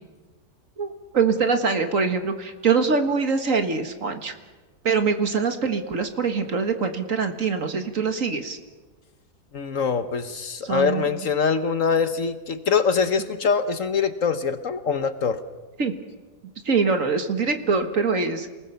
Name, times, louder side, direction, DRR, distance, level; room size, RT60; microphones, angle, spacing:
voice 1, 1.1-4.3 4.8-8.6 10.6-11.1 15.8-15.9 16.7-18.5, right 5 dB, 55° right, 7 dB, 2.0 m, -23 dB
voice 2, 9.5-15.4, left 5 dB, 55° left, 10 dB, 1.4 m, -23 dB
28.0 x 19.5 x 7.0 m, 1.3 s
omnidirectional pair, 1.7 m